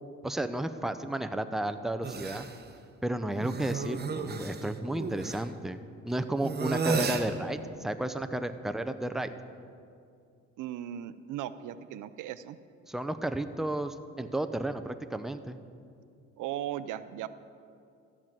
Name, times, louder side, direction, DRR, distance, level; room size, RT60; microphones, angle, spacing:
voice 1, 0.2-2.5 3.0-5.8 6.0-9.3 12.9-15.6, right 1 dB, ahead, 9 dB, 0.6 m, -32 dB
sound 1, 2.0-2.6 3.3-5.4 6.4-7.3, right 4 dB, 35° right, 1.0 m, -33 dB
voice 2, 10.6-12.6 16.4-17.3, right 11 dB, 85° right, 14 dB, 0.6 m, -37 dB
13.5 x 6.1 x 8.9 m, 2.4 s
cardioid pair, 90°, 30 cm